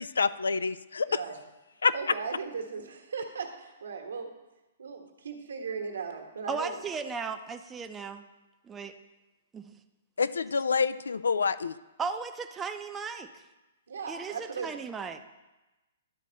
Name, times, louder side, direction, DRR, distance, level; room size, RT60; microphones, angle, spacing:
voice 1, 0.0-1.2 1.8-1.9 10.2-11.8, left 5 dB, 70° left, 15 dB, 0.4 m, -27 dB
voice 2, 1.1-1.4 1.9-4.4 4.8-6.8 13.9-14.8, right 5 dB, 70° right, 3 dB, 1.4 m, -37 dB
voice 3, 6.5-8.2 8.6-8.9 9.5-9.8 12.0-13.3 14.1-15.2, right 5 dB, 15° right, 6 dB, 0.6 m, -36 dB
11.5 x 4.1 x 7.1 m, 1.1 s
figure-of-eight pair, 120°, 0 cm